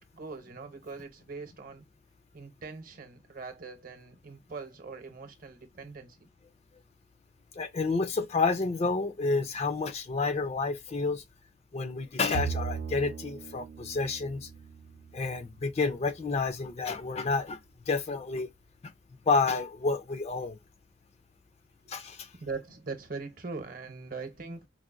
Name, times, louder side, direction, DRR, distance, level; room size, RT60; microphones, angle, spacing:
voice 1, 0.1-1.8 2.3-6.2 22.3-24.7, right 4 dB, 50° right, 0.8 m, -41 dB
voice 2, 7.6-11.2 11.7-14.5 15.1-17.6 17.9-18.5 19.3-20.6 21.9-22.3, left 4 dB, 35° left, 0.4 m, -29 dB
Bowed string instrument, 12.3-15.8, right 6 dB, 85° right, 0.6 m, -38 dB
4.7 x 2.1 x 2.4 m
head